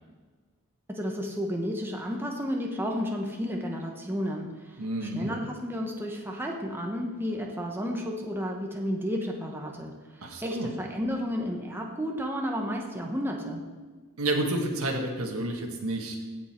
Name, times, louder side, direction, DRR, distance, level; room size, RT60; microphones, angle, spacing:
voice 1, 0.9-13.6, equal, 10° right, 0 dB, 1.0 m, -32 dB
voice 2, 4.8-5.3 10.2-10.7 14.2-16.2, right 1 dB, 75° right, 2 dB, 1.7 m, -30 dB
16.0 x 5.4 x 4.4 m, 1.4 s
head